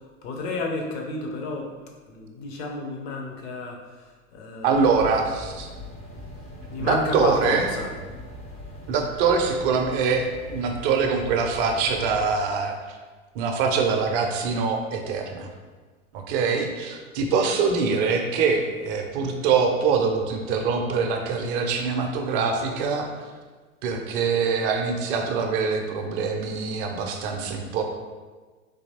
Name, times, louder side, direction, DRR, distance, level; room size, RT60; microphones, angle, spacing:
voice 1, 0.2-1.7 2.1-4.1 4.3-5.2 6.7-7.9, left 3 dB, 50° left, 2 dB, 0.8 m, -31 dB
voice 2, 4.6-5.7 6.8-7.6 8.9-12.8 13.3-15.5 16.1-23.1 23.8-27.8, right 5 dB, 40° right, 3 dB, 0.6 m, -24 dB
sound 1, 4.7-12.3, left 1 dB, 15° left, 0.5 m, -41 dB
3.9 x 2.9 x 2.8 m, 1.4 s
figure-of-eight pair, 90°, 41 cm